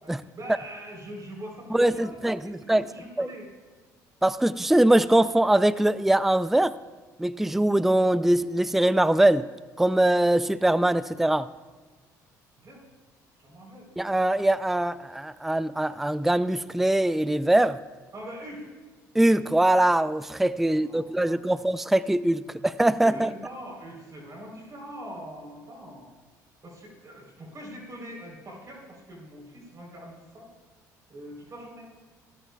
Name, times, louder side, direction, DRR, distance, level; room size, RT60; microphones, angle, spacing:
voice 1, 0.0-3.5 12.6-12.8 13.4-13.9 18.1-18.7 20.6-21.6 22.5-26.1 26.6-30.5 31.1-31.9, equal, 40° right, -1 dB, 3.7 m, -43 dB
voice 2, 1.7-2.9 3.2-3.3 4.2-6.7 7.2-9.5 9.8-11.5 14.0-17.8 19.1-23.3, right 1 dB, 5° right, 16 dB, 0.4 m, -22 dB
28.5 x 13.0 x 2.3 m, 1.4 s
hypercardioid pair, 60°, 9 cm